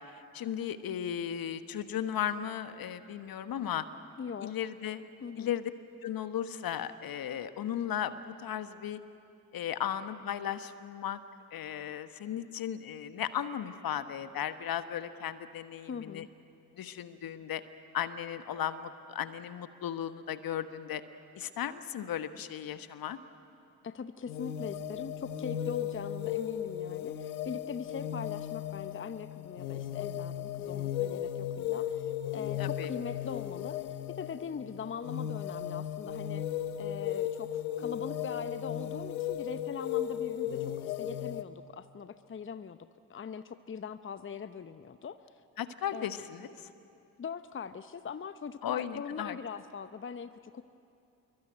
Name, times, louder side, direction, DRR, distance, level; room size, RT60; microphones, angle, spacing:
voice 1, 0.1-3.9 4.4-5.0 5.4-5.7 6.0-9.0 9.5-11.2 11.5-16.2 16.8-17.6 17.9-21.0 21.4-23.2 32.6-32.9 45.6-46.5 48.6-49.4, left 10 dB, 55° left, 11 dB, 1.3 m, -36 dB
voice 2, 4.2-4.5 5.2-5.6 15.9-16.3 23.8-36.4 36.8-42.8 43.1-45.2 45.9-46.2 47.2-50.6, left 6 dB, 30° left, 12 dB, 0.9 m, -41 dB
sound 1, 24.3-41.4, left 11 dB, 85° left, 1.0 m, -36 dB
26.0 x 23.0 x 8.9 m, 2.7 s
hypercardioid pair, 45°, 42 cm